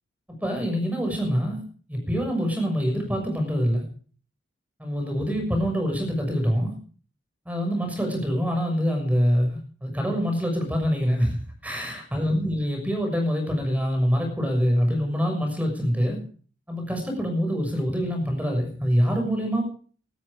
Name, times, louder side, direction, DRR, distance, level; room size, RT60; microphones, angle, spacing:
voice 1, 0.3-1.6 1.9-3.8 4.8-6.7 7.4-11.4 11.6-16.2 16.7-19.6, equal, 10° right, 3 dB, 6.4 m, -25 dB
17.5 x 13.5 x 5.1 m, 0.43 s
head